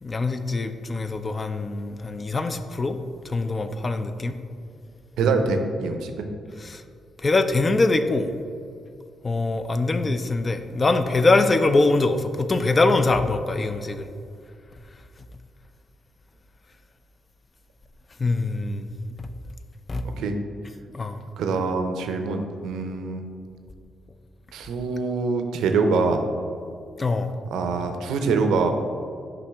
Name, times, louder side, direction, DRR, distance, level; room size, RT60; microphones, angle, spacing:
voice 1, 0.0-3.0 3.2-4.3 6.6-6.8 7.2-8.3 9.2-14.1 18.2-18.9 19.2-19.3 19.9-20.1 20.9-21.2 27.0-27.3, left 3 dB, 35° left, 9 dB, 0.4 m, -23 dB
voice 2, 5.2-6.3 20.2-20.3 21.4-23.2 24.5-26.2 27.5-28.7, right 4 dB, 80° right, 6 dB, 0.5 m, -24 dB
6.0 x 5.0 x 3.5 m, 2.3 s
supercardioid pair, 50°, 0 cm